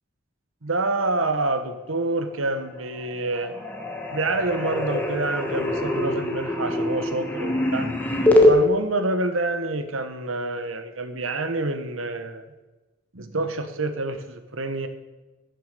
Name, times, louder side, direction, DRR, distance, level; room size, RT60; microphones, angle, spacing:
voice 1, 0.6-3.5 4.1-7.9 8.5-12.4 13.1-14.9, right 2 dB, 80° right, 9 dB, 1.2 m, -27 dB
sound 1, 2.5-3.1 3.4-8.5, left 1 dB, 10° left, 1.4 m, -23 dB
14.0 x 6.7 x 6.8 m, 1.1 s
head